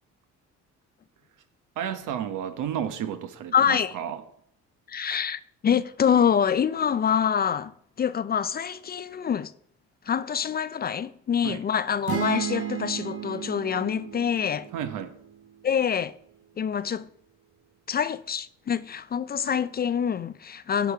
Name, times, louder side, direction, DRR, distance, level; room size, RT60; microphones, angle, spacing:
voice 1, 1.8-4.2 11.4-11.6 14.7-15.1, right 9 dB, 85° right, 1.0 m, -32 dB
voice 2, 3.5-3.9 4.9-9.5 10.1-14.7 15.6-16.2 16.6-17.1 17.9-20.9, left 8 dB, 35° left, 0.4 m, -26 dB
sound 1, 12.1-15.8, right 10 dB, 50° right, 1.1 m, -34 dB
9.4 x 5.1 x 4.7 m
cardioid pair, 90°, 30 cm